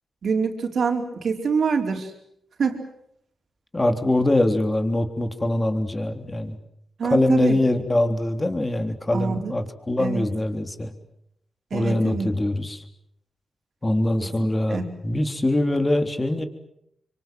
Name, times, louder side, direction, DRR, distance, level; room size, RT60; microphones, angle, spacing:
voice 1, 0.2-2.1 2.6-2.8 7.0-7.6 9.1-9.5 10.0-10.3 11.7-12.3 14.2-14.9, right 5 dB, 65° right, 4 dB, 4.5 m, -26 dB
voice 2, 3.7-6.6 7.0-10.9 11.7-12.8 13.8-16.4, left 1 dB, 25° left, 7 dB, 3.6 m, -23 dB
25.5 x 25.0 x 7.7 m, 0.74 s
cardioid pair, 50°, 0 cm